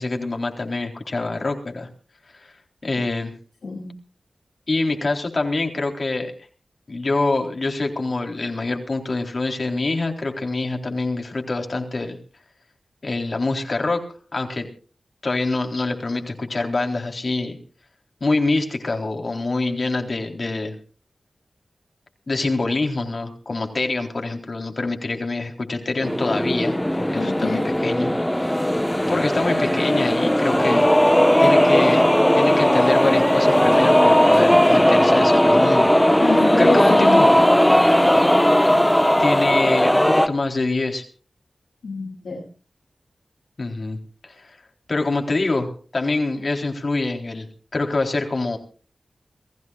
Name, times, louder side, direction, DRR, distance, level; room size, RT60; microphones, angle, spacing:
voice 1, 0.0-1.9 2.8-3.3 4.7-6.3 6.9-12.2 13.0-14.0 14.3-14.7 15.2-17.6 18.2-20.7 22.3-28.1 29.1-30.9 31.4-32.1 32.4-36.2 36.6-37.3 39.2-41.0 43.6-44.5 44.9-48.6, left 3 dB, 55° left, 3 dB, 3.9 m, -25 dB
voice 2, 3.6-3.9 27.1-27.7 36.2-37.2 41.8-42.4, left 3 dB, 90° left, -2 dB, 7.9 m, -25 dB
sound 1, 26.0-40.3, equal, 10° left, 1.2 m, -17 dB
29.5 x 15.5 x 2.5 m, 0.39 s
cardioid pair, 50°, 0 cm